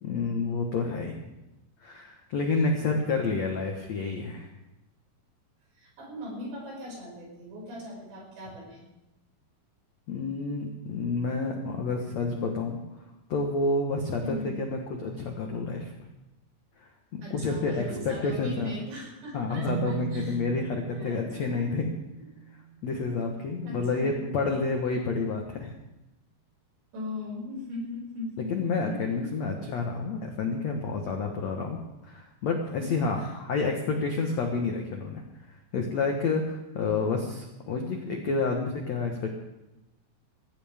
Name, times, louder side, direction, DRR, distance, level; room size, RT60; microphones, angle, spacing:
voice 1, 0.0-1.3 1.8-4.5 10.1-12.8 13.3-15.9 16.8-18.7 19.3-21.9 22.8-25.7 28.5-35.2 35.7-39.4, left 3 dB, 70° left, 2 dB, 1.6 m, -29 dB
voice 2, 5.7-8.9 14.2-14.6 17.2-20.4 20.9-21.7 22.2-22.3 23.6-24.3 26.9-29.2 32.8-33.3, left 1 dB, 70° right, -3 dB, 8.3 m, -39 dB
sound 1, 19.7-23.2, right 10 dB, 85° right, 1.9 m, -38 dB
22.0 x 15.5 x 3.6 m, 0.96 s
omnidirectional pair, 5.1 m